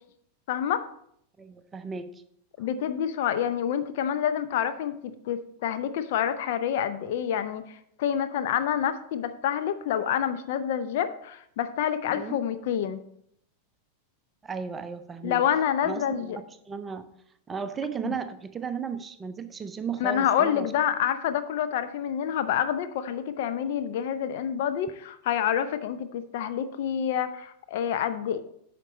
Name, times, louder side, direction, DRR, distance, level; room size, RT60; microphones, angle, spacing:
voice 1, 0.5-0.8 2.6-13.0 15.2-16.4 18.0-18.1 20.0-28.4, left 9 dB, 50° left, 10 dB, 0.6 m, -28 dB
voice 2, 1.4-2.2 2.6-2.7 12.1-12.4 14.4-15.4 15.8-17.1 17.5-20.7, right 6 dB, 15° right, 10 dB, 0.6 m, -35 dB
8.8 x 6.0 x 4.0 m, 0.71 s
figure-of-eight pair, 90°, 0 cm